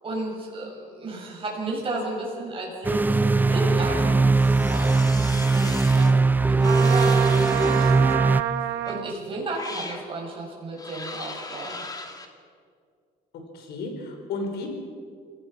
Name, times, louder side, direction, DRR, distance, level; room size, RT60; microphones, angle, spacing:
voice 1, 0.0-4.3 4.7-5.0 5.5-6.2 6.5-8.1 8.8-11.8, right 2 dB, 30° right, -2 dB, 7.3 m, -33 dB
sound 1, 2.8-8.4, right 3 dB, 10° right, 0.5 m, -20 dB
sound 2, 4.3-6.1 6.6-8.2 8.8-9.0 9.5-10.0 10.7-12.3, left 3 dB, 20° left, 2.4 m, -38 dB
Trumpet, 6.6-9.1, right 13 dB, 90° right, 1.3 m, -27 dB
voice 2, 13.5-14.7, left 3 dB, 70° left, 3 dB, 5.1 m, -33 dB
27.0 x 18.5 x 6.0 m, 2.2 s
cardioid pair, 110°, 17 cm